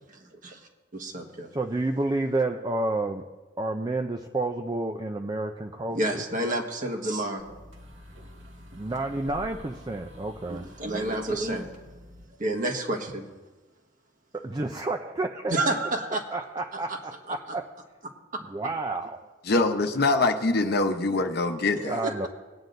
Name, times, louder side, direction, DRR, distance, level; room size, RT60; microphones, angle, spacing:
voice 1, 0.1-0.6 0.9-1.5 5.9-7.4 10.5-11.9 12.4-13.3 15.5-16.4 16.9-17.0 17.3-17.4 18.3-18.4 22.0-22.3, right 2 dB, 40° right, 2 dB, 1.4 m, -30 dB
voice 2, 1.5-3.3 3.6-6.2 8.7-10.6 14.3-15.6 16.3-17.7 18.5-19.3 21.9-22.3, right 2 dB, 20° right, 4 dB, 0.4 m, -30 dB
sound 1, 7.4-12.2, left 1 dB, 75° right, 1.9 m, -47 dB
voice 3, 19.4-22.0, left 2 dB, 50° left, 6 dB, 0.9 m, -24 dB
20.5 x 9.4 x 2.6 m, 1.2 s
head